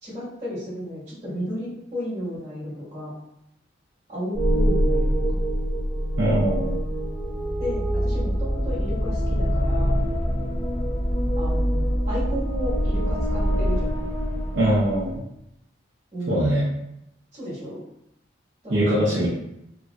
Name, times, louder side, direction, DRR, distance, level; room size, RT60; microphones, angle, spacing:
voice 1, 0.0-3.1 4.1-5.1 7.6-9.9 11.3-14.0 16.1-16.5 17.3-17.8 18.6-19.2, equal, 35° right, -10 dB, 1.4 m, -33 dB
sound 1, 4.3-15.2, equal, 30° left, 0.8 m, -24 dB
voice 2, 6.2-6.8 14.5-15.2 16.3-16.6 18.7-19.3, right 1 dB, 70° right, -8 dB, 0.8 m, -22 dB
3.1 x 2.5 x 2.2 m, 0.80 s
head